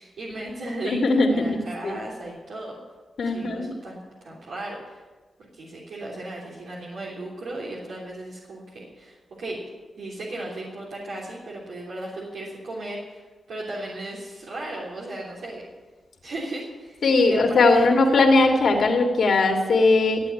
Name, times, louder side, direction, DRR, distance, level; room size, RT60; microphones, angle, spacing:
voice 1, 0.0-2.8 3.2-5.0 5.5-9.6 10.0-15.6 16.2-18.0, right 1 dB, 75° right, -5 dB, 3.3 m, -36 dB
voice 2, 0.8-1.9 3.2-3.7 17.0-20.2, left 3 dB, 70° left, 2 dB, 2.7 m, -19 dB
14.5 x 8.5 x 9.8 m, 1.3 s
cardioid pair, 55°, 0 cm